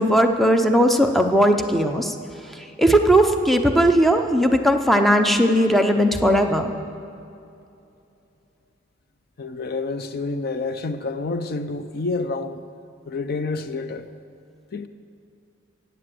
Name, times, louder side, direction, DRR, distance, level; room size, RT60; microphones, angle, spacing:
voice 1, 0.0-2.2 2.5-6.7, equal, ahead, 0.7 m, -18 dB
voice 2, 9.4-12.6 13.1-14.1 14.7-14.9, left 3 dB, 50° left, 0.5 m, -28 dB
16.0 x 9.0 x 7.7 m
head